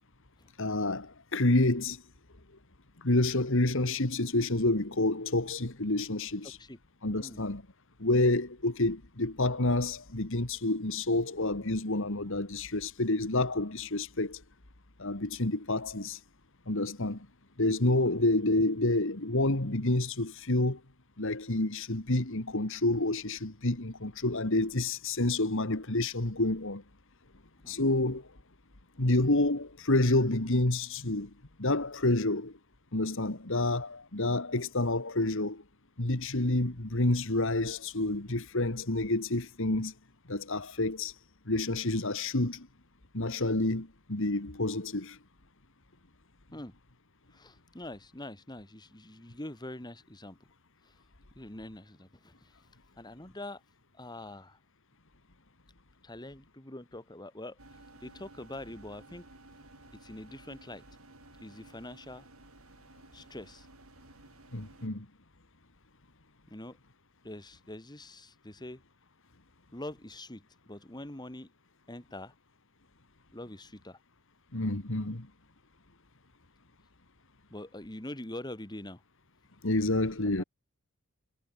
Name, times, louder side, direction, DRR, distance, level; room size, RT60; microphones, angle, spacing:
voice 1, 0.6-2.0 3.0-6.6 7.0-7.6 8.0-14.4 15.0-16.2 16.7-17.2 17.6-20.8 21.2-26.8 27.7-28.3 29.0-31.3 31.6-32.5 32.9-35.6 36.0-39.9 40.3-41.1 41.5-42.7 43.1-45.2 64.5-65.1 74.5-75.3 79.6-80.4, left 2 dB, 65° left, 2.3 m, -28 dB
voice 2, 47.3-50.4 50.8-50.9 51.3-52.5 53.0-53.6 53.9-54.6 56.0-57.6 58.0-59.2 60.0-60.8 61.4-62.3 63.1-63.7 66.5-66.8 67.2-68.8 69.7-71.5 71.9-72.3 73.3-74.0 77.5-79.0 80.4-80.5, left 1 dB, 20° left, 2.7 m, -44 dB
sound 1, 57.6-64.9, right 2 dB, 80° right, 6.9 m, -55 dB
head